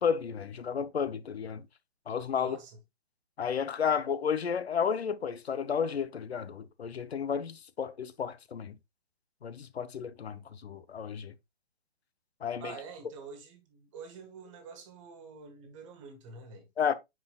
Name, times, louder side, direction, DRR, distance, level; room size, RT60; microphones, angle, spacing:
voice 1, 0.0-1.6 2.1-2.6 3.4-8.8 9.4-11.3 12.4-12.7 16.8-16.9, left 7 dB, 80° left, 0.8 m, -32 dB
voice 2, 2.3-2.8 12.6-16.7, right 5 dB, 30° right, 1.6 m, -47 dB
9.4 x 4.5 x 2.2 m
hypercardioid pair, 150°, 31 cm